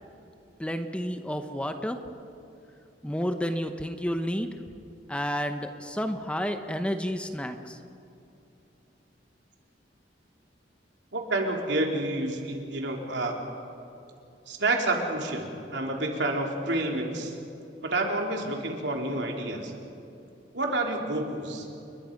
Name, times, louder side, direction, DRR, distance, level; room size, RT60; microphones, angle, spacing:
voice 1, 0.6-2.0 3.0-4.5 5.1-7.8, equal, 5° left, 7 dB, 1.0 m, -30 dB
voice 2, 11.1-13.4 14.5-17.3 17.8-19.7 20.5-21.7, right 2 dB, 80° right, 1 dB, 3.4 m, -29 dB
29.5 x 21.5 x 5.3 m, 2.8 s
head